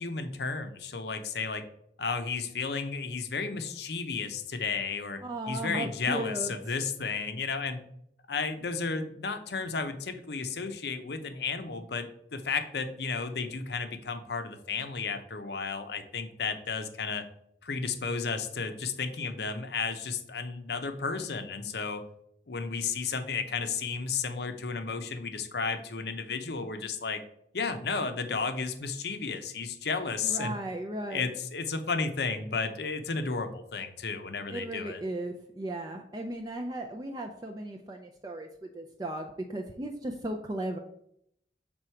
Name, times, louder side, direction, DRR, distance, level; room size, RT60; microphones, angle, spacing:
voice 1, 0.0-1.6 2.0-5.2 5.5-7.8 8.3-17.2 17.6-22.0 22.5-27.2 27.5-30.6 31.1-35.0, left 4 dB, 70° left, 8 dB, 0.7 m, -33 dB
voice 2, 5.2-6.7 30.2-31.3 34.5-40.8, right 1 dB, 20° right, 3 dB, 0.4 m, -36 dB
6.2 x 3.7 x 4.4 m, 0.73 s
head